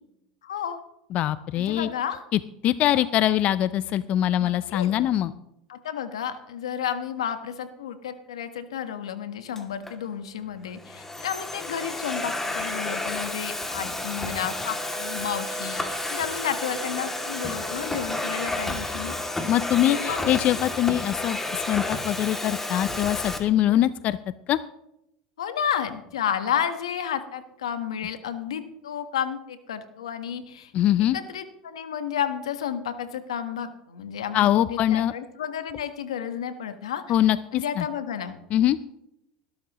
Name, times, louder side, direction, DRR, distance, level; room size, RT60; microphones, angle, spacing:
voice 1, 0.4-0.8 1.5-2.2 2.9-3.0 4.3-4.9 5.7-19.2 19.8-20.3 23.6-23.9 25.4-30.7 31.1-37.0 37.5-38.4, left 8 dB, 90° left, 9 dB, 1.3 m, -32 dB
voice 2, 1.1-1.9 2.3-5.3 19.5-24.2 24.5-24.6 30.7-31.2 34.3-35.1 37.1-37.9 38.5-38.8, left 12 dB, 50° left, 15 dB, 0.5 m, -23 dB
Domestic sounds home sounds, 9.6-9.9 10.7-23.4, left 2 dB, 10° left, 2.5 m, -31 dB
Wind instrument woodwind instrument, 14.6-19.2, right 8 dB, 45° right, 4.1 m, -42 dB
19.5 x 12.5 x 3.1 m, 0.81 s
hypercardioid pair, 90°, 3 cm